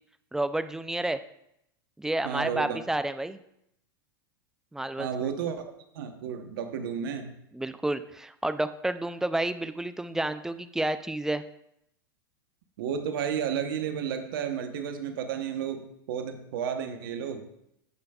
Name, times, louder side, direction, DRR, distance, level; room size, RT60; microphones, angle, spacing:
voice 1, 0.3-1.2 2.0-3.4 4.7-5.3 7.5-11.4, right 1 dB, 5° right, 12 dB, 0.4 m, -30 dB
voice 2, 2.2-2.8 5.0-7.4 12.8-17.4, right 8 dB, 70° right, 7 dB, 1.0 m, -32 dB
15.0 x 5.2 x 2.3 m, 0.78 s
hypercardioid pair, 105°, 12 cm